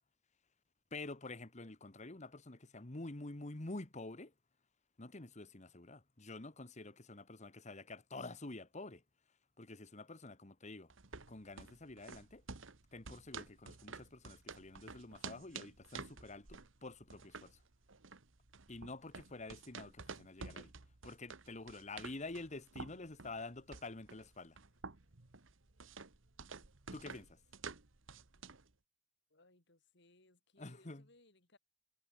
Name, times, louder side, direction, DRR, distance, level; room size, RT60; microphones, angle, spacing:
voice 1, 0.9-4.3 5.0-9.0 9.6-10.9 11.3-12.4 12.9-17.6 18.7-20.7 21.0-24.6 26.9-27.4 30.6-31.1, left 2 dB, 35° left, 1.5 m, -48 dB
sound 1, 10.9-28.7, right 4 dB, 75° right, 1.6 m, -51 dB
voice 2, 29.3-31.6, left 2 dB, 60° left, 4.6 m, -67 dB
head